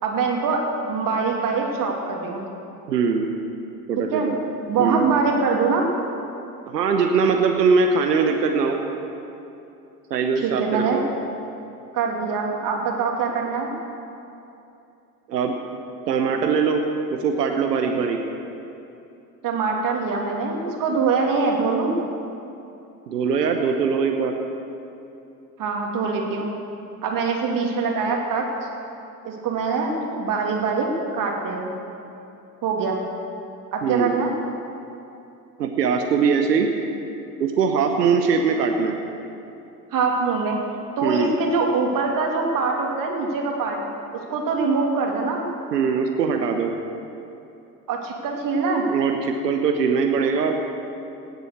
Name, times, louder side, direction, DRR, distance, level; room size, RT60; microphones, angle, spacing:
voice 1, 0.0-2.5 4.1-4.3 4.7-5.8 10.4-11.0 11.9-13.7 19.4-22.0 25.6-26.5 27.0-28.5 29.2-31.7 32.6-33.0 33.7-34.3 39.9-40.6 41.0-43.8 44.3-45.4 47.9-48.8, right 4 dB, 40° right, 0 dB, 2.8 m, -23 dB
voice 2, 2.9-3.3 3.9-4.4 4.8-5.1 6.7-8.8 10.1-11.0 15.3-15.6 16.1-16.8 17.1-18.2 23.1-24.3 33.8-34.1 35.6-36.7 37.4-39.0 41.0-41.4 45.7-46.7 48.9-50.6, right 5 dB, 80° right, 4 dB, 1.1 m, -21 dB
18.0 x 8.1 x 6.6 m, 2.8 s
figure-of-eight pair, 70°, 48 cm